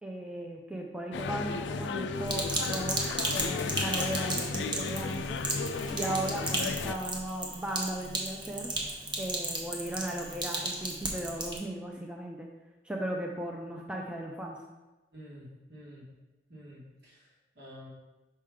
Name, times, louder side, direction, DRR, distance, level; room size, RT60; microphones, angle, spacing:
voice 1, 0.0-3.0 3.3-5.4 5.9-8.7 9.2-12.5 12.8-14.6, right 1 dB, 5° right, 0 dB, 0.4 m, -36 dB
sound 1, 1.1-7.0, left 4 dB, 85° left, 0.3 m, -34 dB
Sink (filling or washing), 2.2-11.6, right 2 dB, 25° right, 0.8 m, -35 dB
voice 2, 15.1-16.0 16.5-17.9, equal, 65° right, -5 dB, 1.9 m, -49 dB
5.5 x 4.9 x 3.6 m, 1.1 s
head